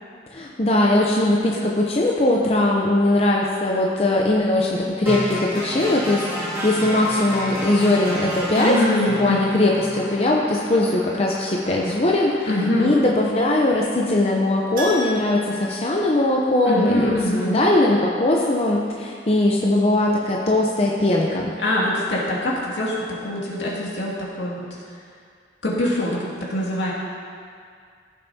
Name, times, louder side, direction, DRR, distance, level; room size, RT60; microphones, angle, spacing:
voice 1, 0.3-8.8 9.2-12.5 12.8-21.5, left 1 dB, 35° left, -2 dB, 0.7 m, -20 dB
sound 1, 5.1-13.1, equal, 15° right, 2.3 m, -32 dB
voice 2, 8.6-9.5 12.4-12.9 16.6-17.5 21.6-24.6 25.6-26.9, left 1 dB, 80° left, -5 dB, 2.3 m, -23 dB
Keyboard (musical), 14.7-16.8 17.1-17.2 19.9-20.0 20.2-20.3, left 1 dB, 50° right, 1.7 m, -34 dB
15.5 x 7.2 x 2.8 m, 2.2 s
head